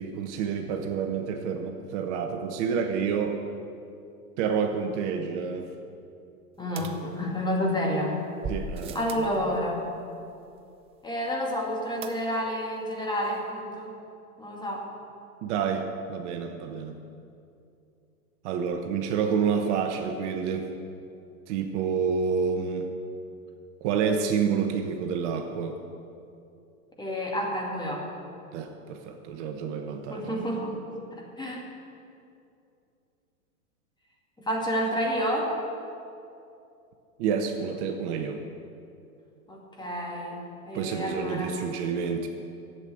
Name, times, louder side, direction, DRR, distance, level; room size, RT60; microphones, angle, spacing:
voice 1, 0.0-3.4 4.4-5.7 8.5-9.6 15.4-17.0 18.4-20.7 21.5-22.9 23.8-25.8 28.5-30.4 37.2-38.4 40.7-42.3, right 6 dB, 50° right, 5 dB, 1.2 m, -29 dB
voice 2, 6.6-8.1 8.9-9.8 11.0-13.9 14.4-14.8 27.0-28.0 30.1-30.8 31.1-31.6 34.4-35.5 39.5-41.6, equal, 10° left, -1 dB, 2.2 m, -29 dB
sound 1, 6.8-7.7 8.4-9.4 12.0-12.6 12.9-13.0 13.2-13.3, right 4 dB, 15° right, 0.4 m, -38 dB
11.5 x 7.9 x 8.4 m, 2.6 s
hypercardioid pair, 115°, 45 cm